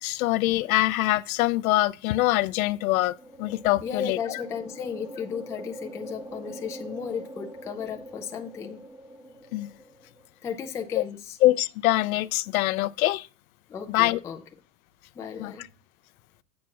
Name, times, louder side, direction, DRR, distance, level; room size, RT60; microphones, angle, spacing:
voice 1, 0.0-4.4 9.5-9.7 11.0-11.1 11.4-13.3 13.9-14.2 15.4-15.7, left 17 dB, 60° left, 0.5 m, -24 dB
sound 1, 2.6-10.3, right 1 dB, 10° right, 0.8 m, -43 dB
voice 2, 3.8-8.8 10.4-11.4 13.7-14.4 15.1-15.6, left 7 dB, 5° left, 0.4 m, -34 dB
8.2 x 7.3 x 4.6 m
hypercardioid pair, 130°, 49 cm